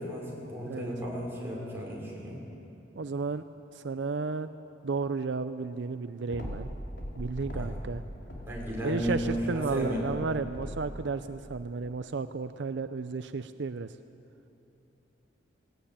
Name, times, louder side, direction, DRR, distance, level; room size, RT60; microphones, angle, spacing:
voice 1, 0.0-2.4 7.5-7.7 8.4-10.0, equal, 15° right, -4 dB, 5.6 m, -34 dB
voice 2, 3.0-3.4 3.7-4.5 4.8-6.7 7.2-8.0 8.8-13.9, right 4 dB, 70° right, 11 dB, 0.5 m, -33 dB
sound 1, 6.3-7.9 8.2-11.0, equal, 75° left, 3.5 m, -40 dB
19.0 x 18.5 x 8.8 m, 2.9 s
head